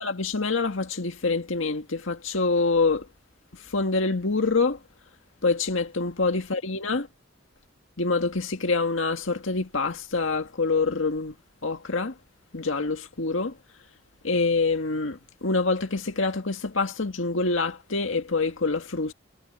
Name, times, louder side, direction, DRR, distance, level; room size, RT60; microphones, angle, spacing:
voice 1, 0.0-3.1 3.6-4.8 5.4-7.1 8.0-11.3 11.6-12.1 12.5-13.6 14.2-19.1, left 3 dB, 90° left, 1.9 m, -26 dB
head